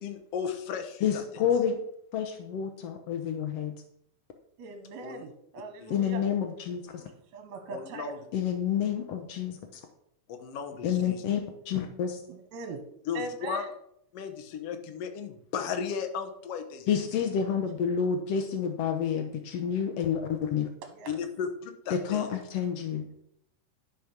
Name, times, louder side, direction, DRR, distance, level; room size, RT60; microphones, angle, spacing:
voice 1, 0.0-1.2 5.0-5.2 5.8-5.9 7.7-8.2 10.3-11.2 13.1-13.6 14.1-16.9 21.1-22.3, left 7 dB, 60° left, 6 dB, 1.7 m, -35 dB
voice 2, 1.0-1.8 2.1-3.8 5.9-7.0 8.3-9.8 10.8-12.2 16.9-20.7 21.9-23.1, left 8 dB, 80° left, 5 dB, 1.4 m, -29 dB
voice 3, 4.6-6.2 6.9-8.2 12.3-12.8 13.1-13.7 20.9-21.2, right 4 dB, 65° right, 4 dB, 2.0 m, -41 dB
11.5 x 5.1 x 5.9 m, 0.73 s
omnidirectional pair, 4.0 m